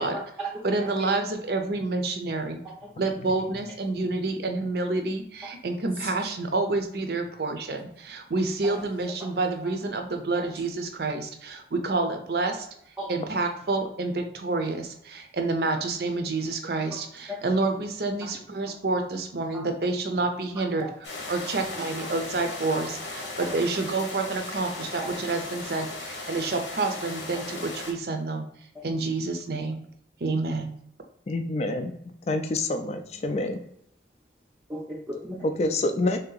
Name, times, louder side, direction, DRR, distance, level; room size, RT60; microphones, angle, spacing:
voice 1, 0.0-1.1 2.6-3.4 5.4-5.5 5.9-6.1 8.6-9.3 9.6-9.8 10.4-10.5 13.0-13.1 13.4-13.5 16.9-17.5 18.2-18.4 19.5-19.7 20.6-20.9 22.0-22.1 22.7-22.8 23.2-23.7 25.0-25.1 25.8-25.9 28.7-28.9 34.7-35.5, right 1 dB, 10° right, -5 dB, 0.6 m, -38 dB
voice 2, 0.6-2.6 3.0-12.7 13.1-20.8 21.3-23.0 23.4-28.4 28.8-29.8 30.2-30.8, right 3 dB, 60° right, 5 dB, 0.6 m, -28 dB
sound 1, 21.0-27.9, left 2 dB, 90° left, 1.0 m, -37 dB
voice 3, 31.3-31.9 32.3-33.6 35.6-36.2, left 2 dB, 35° left, 6 dB, 0.3 m, -27 dB
3.4 x 2.8 x 3.8 m, 0.73 s
head